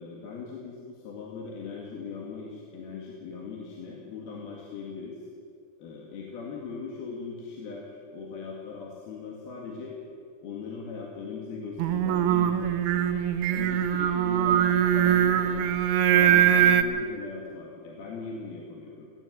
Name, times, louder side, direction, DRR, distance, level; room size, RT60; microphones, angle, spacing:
voice 1, 0.0-5.2 5.8-10.0 10.4-13.1 13.5-15.7 16.1-19.1, left 5 dB, 75° left, -2 dB, 3.9 m, -39 dB
Singing, 11.8-16.8, right 10 dB, 90° right, 1.6 m, -22 dB
19.5 x 17.0 x 8.2 m, 2.2 s
omnidirectional pair, 4.5 m